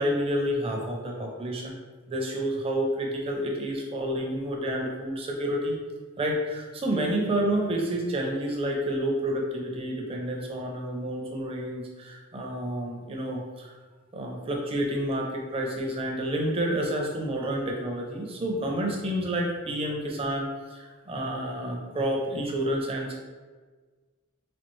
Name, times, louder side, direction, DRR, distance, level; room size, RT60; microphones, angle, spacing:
voice 1, 0.0-1.7 2.1-5.8 6.2-13.7 14.1-23.1, right 1 dB, 25° right, 0 dB, 0.5 m, -29 dB
4.2 x 2.4 x 3.1 m, 1.4 s
head